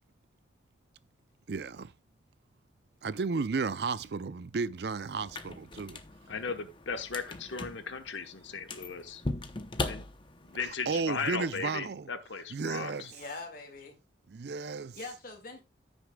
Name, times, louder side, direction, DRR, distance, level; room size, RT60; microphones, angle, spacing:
voice 1, 1.5-1.9 3.0-6.0 10.9-12.1 12.5-13.1 14.3-15.0, right 4 dB, 60° right, 0.5 m, -33 dB
sound 1, 5.2-10.7, left 2 dB, 25° left, 0.7 m, -40 dB
voice 2, 6.3-9.2 9.8-10.0 10.4-13.1, left 5 dB, 85° left, 1.1 m, -37 dB
voice 3, 13.1-14.0 14.9-15.6, left 3 dB, 50° left, 2.0 m, -43 dB
15.0 x 6.3 x 2.3 m
head